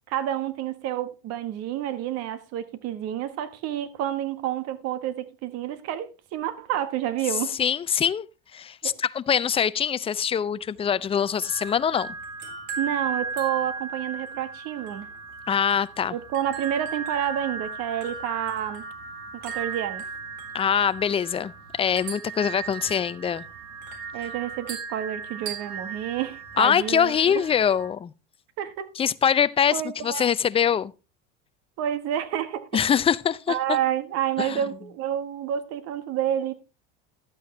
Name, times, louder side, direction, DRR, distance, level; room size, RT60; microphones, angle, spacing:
voice 1, 0.1-7.6 8.8-8.9 12.8-15.1 16.1-18.8 19.3-20.0 24.1-27.3 28.6-28.9 29.7-30.3 31.8-32.7 33.5-36.5, right 11 dB, 60° right, 1.5 m, -29 dB
voice 2, 7.6-8.3 8.5-12.1 15.5-16.1 20.5-21.5 21.8-23.4 26.6-28.1 29.0-30.9 32.7-33.6 34.4-34.6, left 8 dB, 20° left, 0.5 m, -23 dB
sound 1, 11.0-27.9, right 4 dB, 80° right, 3.9 m, -36 dB
12.0 x 8.5 x 3.2 m
supercardioid pair, 120°, 29 cm